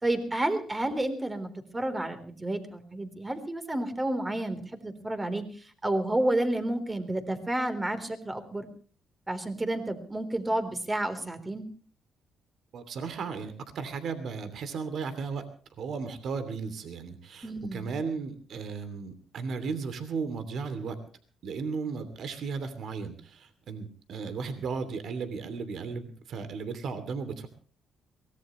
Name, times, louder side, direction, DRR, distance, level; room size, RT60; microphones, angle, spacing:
voice 1, 0.0-5.4 5.8-8.7 9.3-11.7 17.4-17.9, right 1 dB, 20° right, 8 dB, 3.8 m, -30 dB
voice 2, 12.7-15.5 15.8-21.0 21.4-27.5, right 5 dB, 65° right, 11 dB, 2.7 m, -35 dB
23.0 x 18.5 x 3.2 m, 0.40 s
cardioid pair, 90°, 0 cm